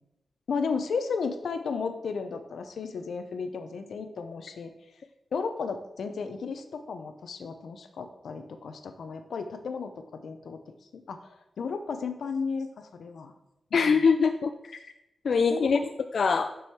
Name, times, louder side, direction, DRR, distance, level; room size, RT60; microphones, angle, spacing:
voice 1, 0.5-4.7 5.3-10.6 10.9-13.3 13.7-13.9 15.3-15.7, left 5 dB, 85° left, 8 dB, 0.7 m, -34 dB
voice 2, 13.7-14.8 15.2-15.8 16.1-16.5, left 5 dB, 60° left, 7 dB, 0.3 m, -23 dB
6.3 x 6.2 x 4.7 m, 0.91 s
wide cardioid pair, 170°, 0 cm